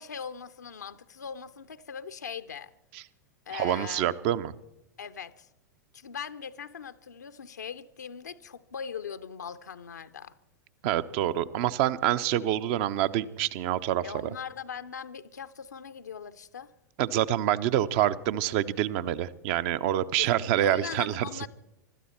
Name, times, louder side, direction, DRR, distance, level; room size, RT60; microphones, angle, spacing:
voice 1, 0.0-2.7 3.5-4.1 5.0-5.5 5.9-10.3 14.0-16.7 20.2-21.5, left 7 dB, 70° left, 0.7 m, -40 dB
voice 2, 3.5-4.5 10.8-14.0 17.0-21.3, right 12 dB, 40° right, 0.7 m, -26 dB
25.0 x 13.0 x 4.3 m
figure-of-eight pair, 95°, 10 cm